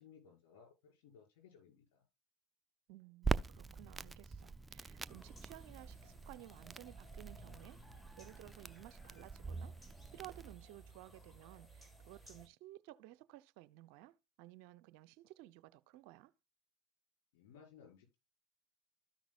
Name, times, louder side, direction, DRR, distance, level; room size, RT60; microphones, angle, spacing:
voice 1, 0.0-2.0 17.3-18.2, left 7 dB, 70° left, 5.8 m, -61 dB
voice 2, 2.9-7.8 8.2-16.3, right 16 dB, 65° right, 0.6 m, -56 dB
Crackle, 3.2-10.5, right 3 dB, 15° right, 0.4 m, -44 dB
sound 1, 5.1-12.5, right 3 dB, 10° left, 1.5 m, -58 dB
13.5 x 6.1 x 2.4 m
hypercardioid pair, 85°, 0 cm